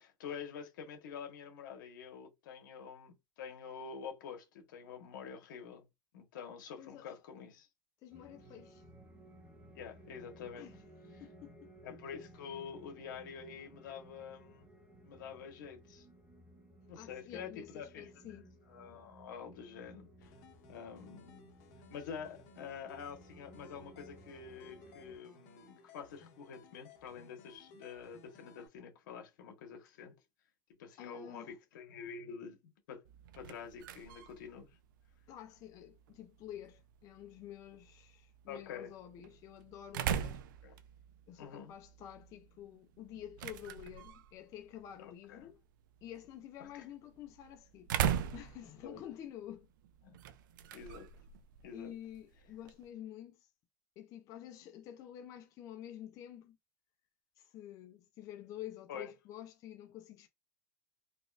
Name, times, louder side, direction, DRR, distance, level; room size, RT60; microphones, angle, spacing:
voice 1, 0.0-5.9 6.1-7.7 9.8-10.7 11.8-14.7 15.0-16.0 16.9-18.1 18.7-20.3 20.7-21.5 21.9-30.1 30.8-33.1 33.3-34.7 38.5-38.9 40.6-40.7 41.4-41.7 45.0-45.5 46.6-46.8 48.8-49.0 50.0-50.2 50.7-51.1 51.6-51.9 58.9-59.1, left 6 dB, 80° left, 1.3 m, -47 dB
voice 2, 6.8-7.2 8.0-8.8 10.5-10.7 11.2-11.7 17.0-18.5 31.0-31.5 35.3-40.4 41.3-45.6 46.0-49.7 51.7-53.5 54.0-56.6 57.4-60.3, left 11 dB, 30° left, 0.4 m, -49 dB
sound 1, 8.1-25.2, right 1 dB, 10° right, 1.1 m, -58 dB
sound 2, 20.2-28.7, left 3 dB, 60° left, 1.4 m, -60 dB
sound 3, 33.0-52.9, right 9 dB, 80° right, 0.4 m, -42 dB
4.0 x 2.3 x 2.4 m
supercardioid pair, 150°, 11 cm